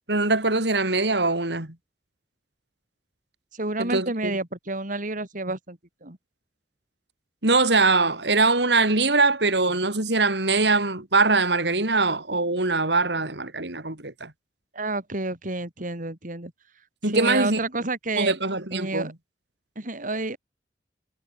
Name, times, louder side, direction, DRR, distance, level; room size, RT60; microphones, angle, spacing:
voice 1, 0.1-1.8 3.8-4.3 7.4-14.3 17.0-17.6 18.2-19.1, right 3 dB, 70° right, 4.1 m, -22 dB
voice 2, 3.5-6.2 14.7-16.5 17.0-18.3 18.7-19.1 19.7-20.4, right 2 dB, 50° right, 3.6 m, -30 dB
head